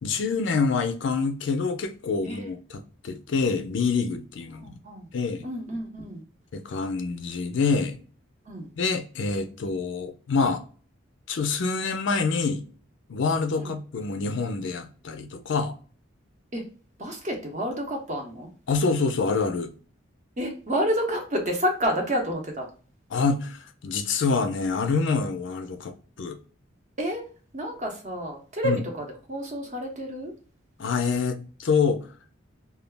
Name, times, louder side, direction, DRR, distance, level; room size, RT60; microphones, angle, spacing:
voice 1, 0.0-2.6 3.0-4.7 5.1-5.4 6.5-8.0 8.8-10.6 11.3-12.6 13.1-15.7 18.7-19.7 23.1-26.4 28.6-28.8 30.8-32.0, left 4 dB, 65° left, 0.4 m, -26 dB
voice 2, 4.5-5.1 5.4-6.2 8.5-8.7 13.6-13.7 16.5-16.6 17.0-18.5 20.4-22.7 27.0-27.3 27.5-30.3, equal, 35° right, 0.8 m, -29 dB
2.2 x 2.0 x 3.2 m
head